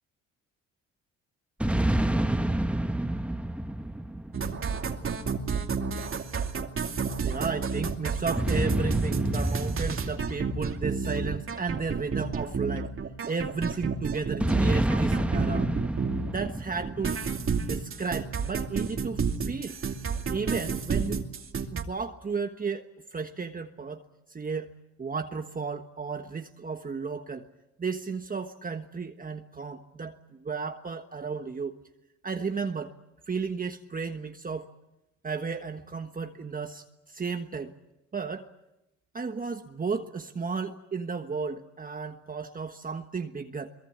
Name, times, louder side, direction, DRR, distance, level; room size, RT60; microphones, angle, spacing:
sound 1, 1.6-5.2 8.4-12.0 14.4-17.8, right 1 dB, 5° right, 1.3 m, -29 dB
sound 2, 4.3-16.5 16.8-21.8, right 5 dB, 45° right, 2.6 m, -30 dB
voice 1, 7.2-12.9 13.3-15.7 16.3-17.1 17.6-19.8 20.3-21.2 21.7-24.0 24.3-24.7 25.0-27.5 27.8-31.8 32.2-32.9 33.3-34.7 35.2-37.7 38.1-38.5 39.1-43.7, right 5 dB, 30° right, 6 dB, 1.4 m, -34 dB
23.0 x 23.0 x 8.7 m, 0.93 s
cardioid pair, 90°, 30 cm